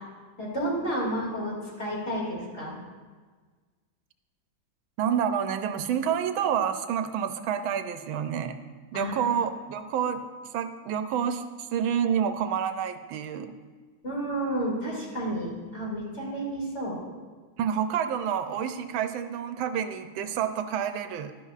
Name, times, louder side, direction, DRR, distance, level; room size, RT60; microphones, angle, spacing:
voice 1, 0.4-2.8 8.9-9.3 14.0-17.0, right 1 dB, 35° left, -4 dB, 2.7 m, -31 dB
voice 2, 5.0-8.6 8.9-10.2 10.5-11.4 11.7-13.5 17.6-21.5, right 8 dB, 85° right, 9 dB, 1.4 m, -28 dB
12.0 x 11.0 x 2.4 m, 1.4 s
omnidirectional pair, 2.2 m